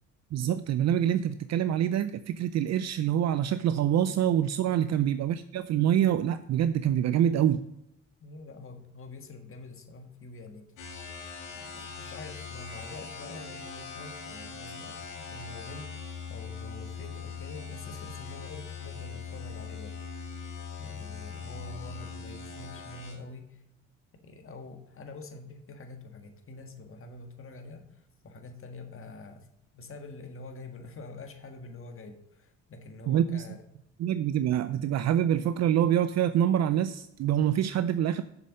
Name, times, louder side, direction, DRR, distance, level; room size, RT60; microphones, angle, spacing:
voice 1, 0.3-7.6 33.1-33.4 34.0-38.2, right 10 dB, 60° right, 12 dB, 0.5 m, -26 dB
voice 2, 8.2-11.0 11.5-20.0 20.2-20.4 20.8-23.6 24.2-29.5 29.7-33.6, left 2 dB, 45° left, 5 dB, 1.5 m, -46 dB
sound 1, 10.8-23.2, left 6 dB, 90° left, 2.2 m, -41 dB
6.9 x 6.7 x 6.4 m, 0.83 s
cardioid pair, 90°, 30 cm